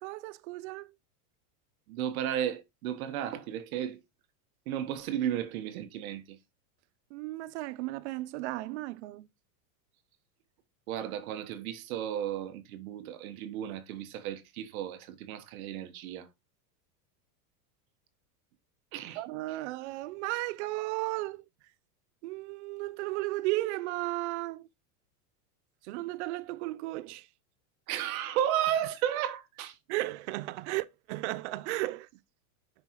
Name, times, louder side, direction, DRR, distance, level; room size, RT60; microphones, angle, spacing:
voice 1, 0.0-0.9 7.1-9.3 19.2-21.4 22.2-24.7 25.8-27.3 29.9-32.1, right 19 dB, 50° right, 0.5 m, -34 dB
voice 2, 1.9-4.0 4.7-6.4 10.9-16.3 18.9-19.2 27.9-29.8, right 10 dB, 65° right, 1.5 m, -33 dB
9.5 x 6.0 x 3.1 m
supercardioid pair, 160°, 46 cm